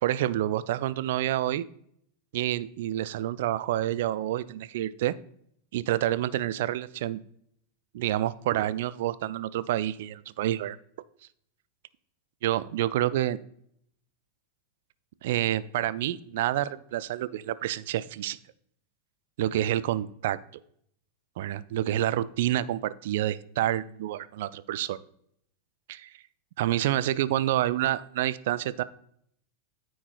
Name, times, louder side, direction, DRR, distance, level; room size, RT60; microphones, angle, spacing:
voice 1, 0.0-1.6 2.3-5.1 5.7-7.2 7.9-10.8 12.4-13.4 15.2-18.4 19.4-20.4 21.4-25.0 25.9-26.1 26.6-28.8, right 13 dB, 55° right, 17 dB, 0.3 m, -28 dB
13.0 x 4.6 x 2.4 m, 0.68 s
figure-of-eight pair, 90°, 0 cm